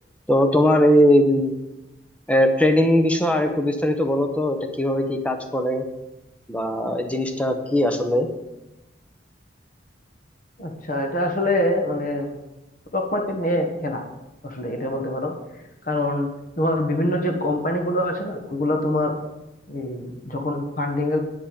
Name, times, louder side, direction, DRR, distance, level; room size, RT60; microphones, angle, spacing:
voice 1, 0.3-1.5 2.3-5.8 6.5-8.3, equal, 5° left, 6 dB, 1.0 m, -20 dB
voice 2, 10.6-12.3 12.9-14.0 14.4-15.3 15.8-16.3 16.6-19.2 19.7-21.2, left 1 dB, 45° left, 3 dB, 1.5 m, -24 dB
10.5 x 8.6 x 5.3 m, 0.97 s
head